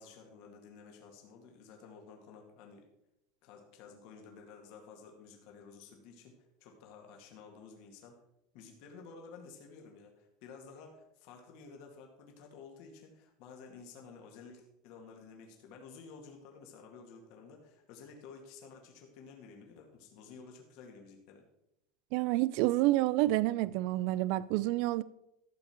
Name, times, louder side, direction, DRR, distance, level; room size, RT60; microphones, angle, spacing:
voice 1, 0.0-2.8 3.4-8.2 8.5-21.4, left 5 dB, 55° left, 2.0 m, -53 dB
voice 2, 22.1-25.0, right 17 dB, 55° right, 0.4 m, -28 dB
13.0 x 7.1 x 4.5 m
supercardioid pair, 165°, 0 cm